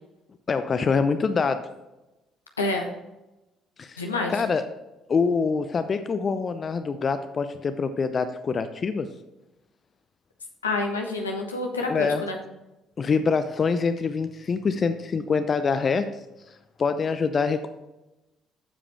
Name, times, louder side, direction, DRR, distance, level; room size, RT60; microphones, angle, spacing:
voice 1, 0.5-1.7 3.8-4.0 4.3-4.6 5.1-9.1 11.9-12.2 13.0-16.1 16.8-17.7, left 5 dB, 40° left, 11 dB, 0.7 m, -25 dB
voice 2, 2.6-2.9 4.0-4.4 10.6-12.4, left 2 dB, 85° left, 2 dB, 1.1 m, -28 dB
14.5 x 5.0 x 3.5 m, 0.97 s
figure-of-eight pair, 50°, 0 cm